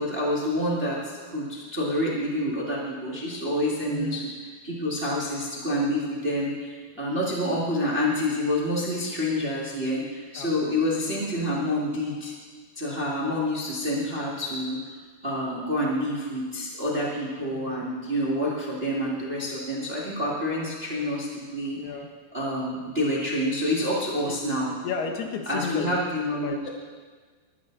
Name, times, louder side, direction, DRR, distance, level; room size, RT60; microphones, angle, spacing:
voice 1, 0.0-4.3 4.6-12.3 12.7-14.8 15.2-21.8 22.3-24.7 25.4-26.6, left 1 dB, 25° right, -5 dB, 1.2 m, -28 dB
voice 2, 3.9-4.2 10.4-10.5 11.4-11.5 17.5-17.8 21.8-22.1 23.8-24.0 24.3-24.4 24.8-25.9 26.2-26.7, left 6 dB, 90° left, 3 dB, 3.4 m, -33 dB
20.5 x 11.5 x 4.0 m, 1.5 s
omnidirectional pair, 4.4 m